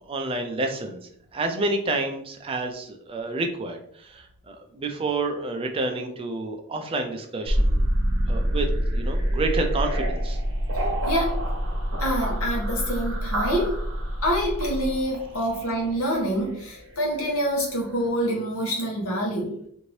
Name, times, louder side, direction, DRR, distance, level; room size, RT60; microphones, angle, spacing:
voice 1, 0.1-1.0 1.3-7.8 8.3-8.7 8.9-10.4, right 2 dB, 25° right, 4 dB, 0.3 m, -29 dB
sound 1, 7.5-17.5, equal, 70° right, 0.8 m, -27 dB
voice 2, 12.0-13.8 14.2-19.5, equal, 80° left, -3 dB, 1.1 m, -26 dB
2.8 x 2.6 x 3.1 m, 0.68 s
head